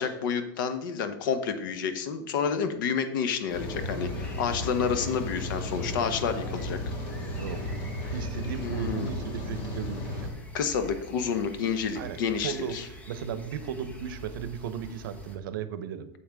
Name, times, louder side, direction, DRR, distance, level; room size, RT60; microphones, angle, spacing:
voice 1, 0.0-6.8 8.6-9.1 10.5-12.8, left 6 dB, 65° left, 10 dB, 1.0 m, -29 dB
Rain, 3.5-10.3, left 1 dB, 40° left, 1.7 m, -34 dB
sound 1, 3.5-15.4, equal, 10° left, 0.8 m, -47 dB
voice 2, 8.1-10.3 12.0-12.2 12.4-12.8 13.1-16.1, right 7 dB, 80° right, 12 dB, 0.8 m, -35 dB
8.8 x 7.0 x 3.5 m, 0.84 s
supercardioid pair, 170°, 11 cm